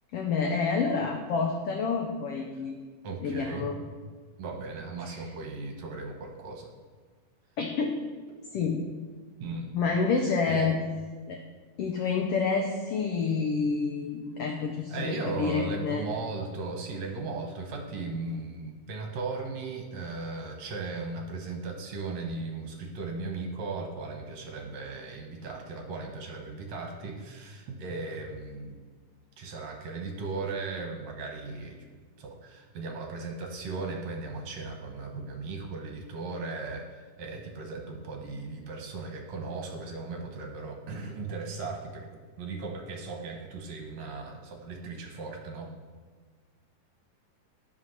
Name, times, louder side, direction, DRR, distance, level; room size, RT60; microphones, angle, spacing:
voice 1, 0.1-2.8 3.2-3.7 5.0-5.2 7.6-8.0 8.5-8.8 9.7-10.8 11.3-11.4 11.8-16.0, left 5 dB, 85° left, 3 dB, 1.3 m, -28 dB
voice 2, 3.0-3.7 4.4-6.7 9.4-9.7 10.4-10.7 14.9-28.8 29.4-31.9 32.2-42.1 42.4-45.7, right 3 dB, 65° right, 2 dB, 2.1 m, -37 dB
10.5 x 5.6 x 5.8 m, 1.5 s
omnidirectional pair, 3.7 m